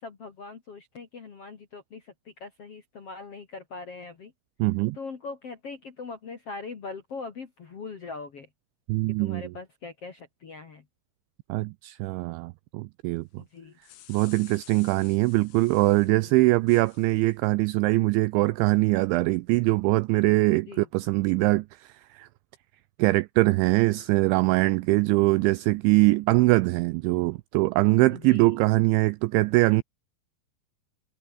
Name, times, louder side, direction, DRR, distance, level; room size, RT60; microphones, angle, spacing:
voice 1, 0.0-4.3 4.9-8.5 9.2-10.8 13.4-13.8 16.1-16.3 20.7-20.8 28.1-28.6, left 4 dB, 50° left, 1.8 m, -41 dB
voice 2, 4.6-5.0 8.9-9.5 11.5-13.4 14.1-22.3 23.0-29.8, right 22 dB, 90° right, 2.6 m, -22 dB
sound 1, 13.6-16.1 16.7-17.3, left 14 dB, 80° left, 4.4 m, -51 dB
omnidirectional pair, 5.9 m